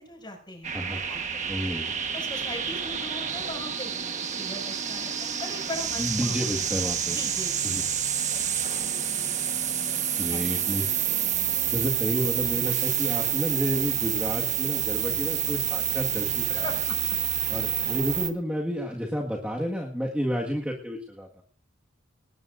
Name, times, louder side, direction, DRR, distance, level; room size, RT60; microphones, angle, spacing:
voice 1, 0.0-0.7 1.1-1.6 2.1-6.9 7.1-7.9 8.3-8.7 9.8-10.4 16.5-17.0, left 1 dB, 25° left, 1 dB, 6.4 m, -40 dB
sound 1, 0.6-18.3, right 9 dB, 40° right, 1.3 m, -28 dB
voice 2, 1.5-1.9 6.0-7.2 7.6-7.8 10.2-10.9 11.7-16.7 17.5-21.4, equal, 5° right, -2 dB, 1.8 m, -30 dB
20.0 x 19.5 x 2.6 m, 0.43 s
head